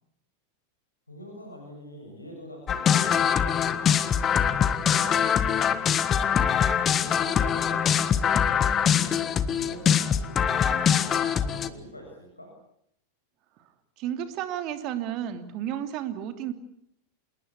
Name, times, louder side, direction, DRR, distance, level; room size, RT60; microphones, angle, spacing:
voice 1, 1.1-6.1 7.0-12.5, equal, 85° left, 2 dB, 7.2 m, -44 dB
sound 1, 2.7-11.7, left 8 dB, 25° left, 1.5 m, -23 dB
voice 2, 14.0-16.5, right 10 dB, 40° right, 9 dB, 3.0 m, -32 dB
27.5 x 21.0 x 8.5 m, 0.72 s
figure-of-eight pair, 90°, 0 cm